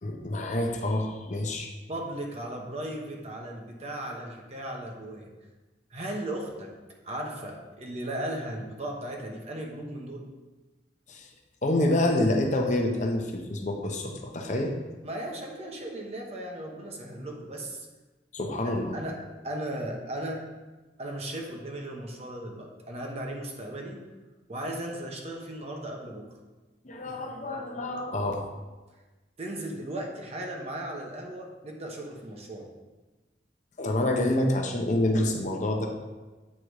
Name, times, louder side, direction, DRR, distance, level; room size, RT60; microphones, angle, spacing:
voice 1, 0.0-1.7 11.1-11.3 11.6-14.7 18.3-19.0 26.8-28.5 33.8-35.9, left 1 dB, 40° left, 3 dB, 0.7 m, -27 dB
voice 2, 1.9-5.3 5.9-6.7 7.0-10.3 15.0-17.9 18.6-20.5 21.0-24.0 24.5-26.3 29.4-32.7, right 1 dB, 35° right, 0 dB, 1.0 m, -36 dB
8.5 x 3.8 x 4.7 m, 1.2 s
head